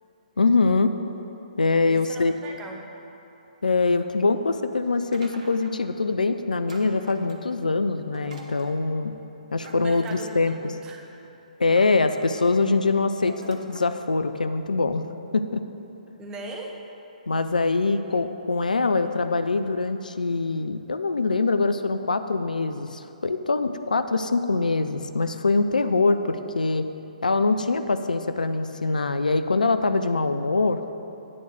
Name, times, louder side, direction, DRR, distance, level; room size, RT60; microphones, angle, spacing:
voice 1, 0.4-0.9 1.6-2.3 3.6-9.1 9.5-10.5 11.6-15.0 15.3-15.6 17.3-26.9 27.2-30.8, left 3 dB, 75° left, 9 dB, 0.4 m, -23 dB
voice 2, 1.9-2.8 9.7-11.0 16.2-16.7 17.9-18.0, right 3 dB, 15° right, 1 dB, 0.8 m, -39 dB
sound 1, 5.1-5.9 6.7-7.6 8.1-8.8 9.6-10.6 11.2-11.4 11.7-12.6 13.3-13.9, right 2 dB, 50° right, 1.0 m, -44 dB
8.6 x 4.6 x 6.9 m, 2.9 s
figure-of-eight pair, 130°, 4 cm